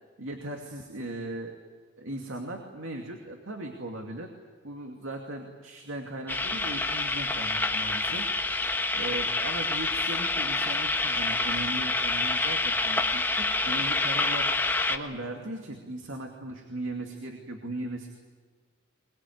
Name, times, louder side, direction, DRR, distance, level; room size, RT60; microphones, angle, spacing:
voice 1, 0.2-1.6 2.0-4.3 4.6-8.3 8.9-14.5 14.9-18.1, right 1 dB, 75° right, 2 dB, 2.5 m, -38 dB
sound 1, 6.3-15.0, left 2 dB, 10° left, 1.3 m, -27 dB
23.5 x 21.0 x 9.5 m, 1.5 s
head